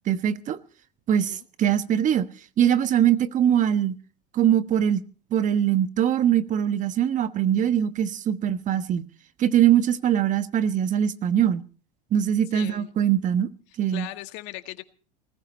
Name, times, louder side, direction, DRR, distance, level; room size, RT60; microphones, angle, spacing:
voice 1, 0.1-0.6 1.1-2.3 2.6-3.9 4.3-5.0 5.3-9.1 9.4-11.6 12.1-13.5 13.8-14.1, right 10 dB, 35° right, 1.3 m, -22 dB
voice 2, 12.5-12.9 13.9-14.8, left 17 dB, 60° left, 1.8 m, -39 dB
20.0 x 15.0 x 4.3 m
hypercardioid pair, 100°, 21 cm